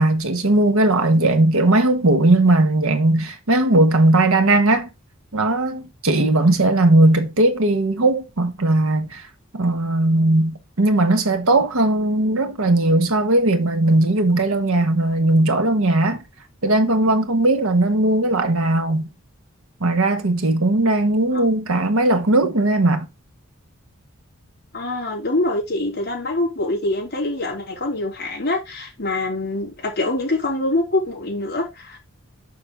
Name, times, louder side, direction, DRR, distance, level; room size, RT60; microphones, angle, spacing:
voice 1, 0.0-4.9 5.3-9.3 9.5-16.2 16.6-19.1 19.8-23.1, right 2 dB, 75° right, 1.3 m, -18 dB
voice 2, 24.7-32.0, left 2 dB, 45° left, 3.4 m, -24 dB
6.4 x 5.8 x 3.5 m
head